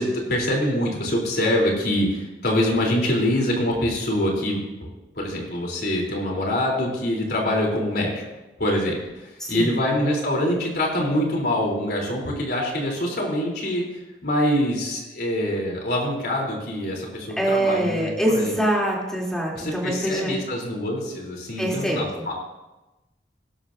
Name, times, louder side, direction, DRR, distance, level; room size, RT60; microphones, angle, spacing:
voice 1, 0.0-4.6 5.2-8.2 8.6-13.8 14.2-18.5 19.5-22.3, left 1 dB, 60° left, -1 dB, 3.6 m, -24 dB
voice 2, 9.4-9.8 17.4-20.3 21.6-22.3, right 1 dB, 5° left, -3 dB, 3.1 m, -24 dB
19.5 x 12.0 x 2.7 m, 1.1 s
head